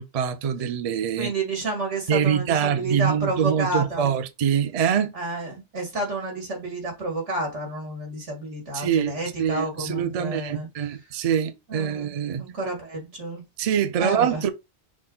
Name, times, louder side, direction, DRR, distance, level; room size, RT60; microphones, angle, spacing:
voice 1, 0.0-1.3 2.1-5.1 8.7-12.4 13.6-14.5, right 8 dB, 55° right, 0.4 m, -24 dB
voice 2, 1.2-4.1 5.1-10.7 11.7-13.4 14.0-14.4, right 2 dB, 90° right, 2.1 m, -30 dB
6.1 x 2.1 x 3.8 m
omnidirectional pair, 1.2 m